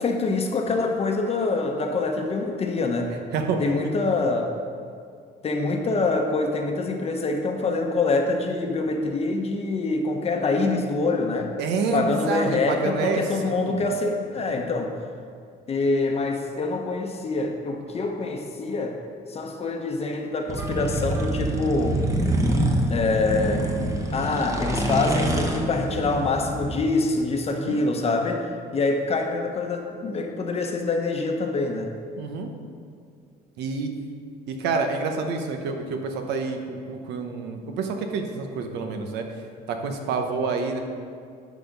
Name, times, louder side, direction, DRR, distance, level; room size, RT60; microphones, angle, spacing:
voice 1, 0.0-3.1 3.6-4.5 5.4-11.5 11.9-14.9 15.7-19.0 19.3-22.0 22.9-23.7 24.1-28.5 28.7-31.9, left 3 dB, 35° left, 3 dB, 0.9 m, -25 dB
voice 2, 3.3-3.7 11.6-13.8 27.5-27.8 32.2-32.5 33.6-33.9 34.5-39.2 39.7-40.8, right 4 dB, 85° right, 5 dB, 1.0 m, -28 dB
sound 1, 20.5-26.8, right 1 dB, 20° right, 1.0 m, -26 dB
11.5 x 4.2 x 5.3 m, 2.2 s
cardioid pair, 110°, 17 cm